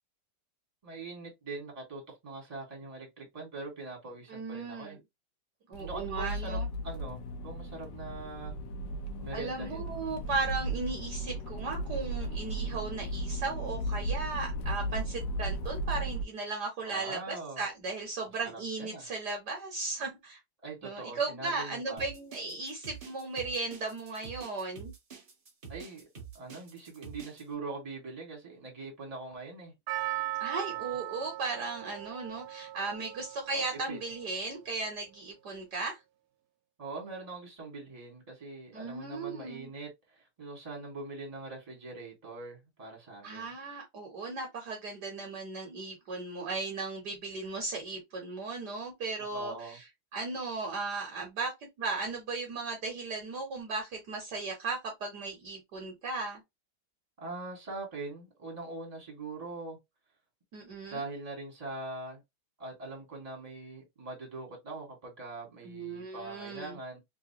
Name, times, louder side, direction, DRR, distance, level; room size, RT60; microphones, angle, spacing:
voice 1, 0.8-5.0 5.8-8.5 9.2-9.9 16.8-17.6 18.4-19.1 20.6-22.1 25.7-26.0 26.3-29.7 30.7-31.0 33.5-34.0 36.8-43.5 49.3-49.8 57.2-59.8 60.9-62.2 62.6-67.0, right 3 dB, 20° right, 1.6 m, -42 dB
voice 2, 4.3-5.0 5.7-6.7 9.3-20.4 20.8-24.9 30.4-36.0 38.7-39.7 43.2-49.9 50.1-51.5 51.8-56.4 60.5-61.0 65.6-66.8, right 3 dB, 60° right, 1.4 m, -36 dB
Accelerating revving vroom, 5.7-16.2, right 1 dB, 70° left, 1.3 m, -35 dB
sound 1, 22.0-27.4, right 6 dB, 40° right, 0.8 m, -47 dB
Percussion, 29.9-34.2 34.5-34.6, right 16 dB, 85° right, 1.5 m, -38 dB
3.5 x 3.2 x 2.8 m
omnidirectional pair, 2.2 m